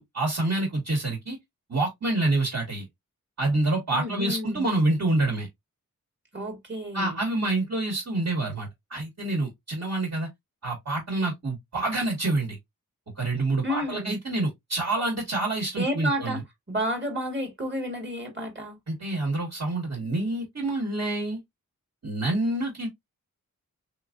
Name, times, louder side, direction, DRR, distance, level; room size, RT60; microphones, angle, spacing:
voice 1, 0.0-1.4 1.7-2.8 3.4-5.5 6.9-10.3 10.6-12.6 13.2-16.4 18.9-21.4 22.0-22.9, right 2 dB, 50° right, 1.7 m, -27 dB
voice 2, 3.9-4.6 6.3-7.2 13.6-14.2 15.8-16.4 16.7-18.8, equal, 35° right, 1.7 m, -31 dB
3.6 x 2.9 x 2.5 m
wide cardioid pair, 90°, 33 cm